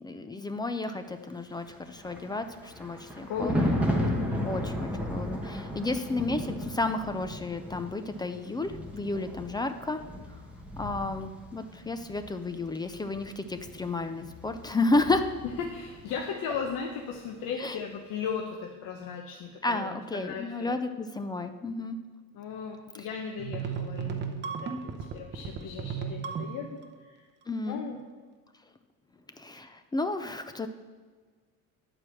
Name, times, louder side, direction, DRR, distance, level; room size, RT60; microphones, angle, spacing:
voice 1, 0.0-3.7 4.4-10.0 10.8-15.3 17.6-17.8 19.6-22.0 27.5-27.8 29.4-30.7, left 2 dB, 15° left, 8 dB, 0.3 m, -32 dB
Thunder, 1.6-16.2 16.5-16.8, equal, 5° right, 1.1 m, -35 dB
voice 2, 3.2-3.6 4.1-4.5 15.6-20.8 22.3-27.3 27.7-28.0, left 6 dB, 70° left, 2 dB, 1.0 m, -37 dB
sound 1, 23.4-26.8, right 6 dB, 30° right, 0.8 m, -35 dB
10.5 x 4.8 x 7.5 m, 1.5 s
cardioid pair, 160°, 34 cm